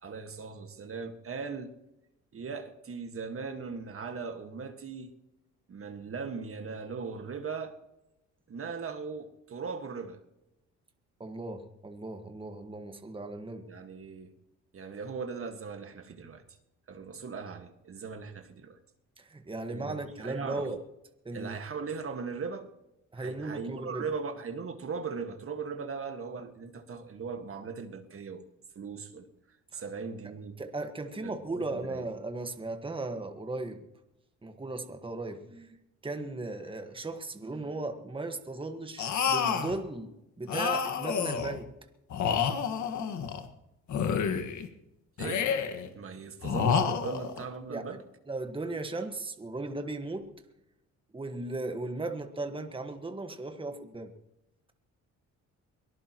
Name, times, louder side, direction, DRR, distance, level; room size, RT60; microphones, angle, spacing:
voice 1, 0.0-1.7 2.3-5.1 5.7-7.7 8.5-10.2 13.7-14.3 14.7-16.4 16.9-18.8 19.7-20.0 20.2-20.7 21.3-22.7 23.2-28.5 28.8-29.3 29.7-30.6 31.2-32.0 45.2-45.5 45.9-48.0, right 5 dB, 45° right, 1.7 m, -39 dB
voice 2, 11.2-13.7 19.2-20.8 21.2-21.6 23.1-24.0 29.7-29.8 30.2-30.3 30.6-33.8 34.4-41.7 47.7-48.0 48.3-50.3 51.1-54.1, right 2 dB, 15° right, 1.5 m, -37 dB
sound 1, 39.0-39.8 40.5-41.6 42.1-43.5 43.9-44.7 45.2-45.9 46.4-47.4, left 7 dB, 70° left, 1.7 m, -29 dB
23.5 x 18.0 x 3.0 m
cardioid pair, 90°, 30 cm